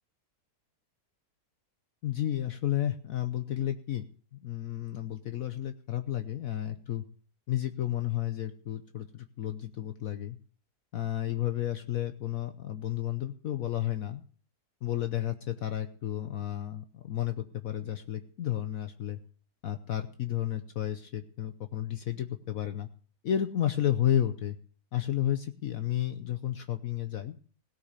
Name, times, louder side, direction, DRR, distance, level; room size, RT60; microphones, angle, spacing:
voice 1, 2.0-4.0 4.3-7.0 7.5-10.4 10.9-14.2 14.8-19.2 19.6-22.9 23.2-24.6 24.9-27.4, left 12 dB, 60° left, 9 dB, 1.2 m, -32 dB
17.0 x 6.1 x 8.1 m, 0.42 s
omnidirectional pair, 1.7 m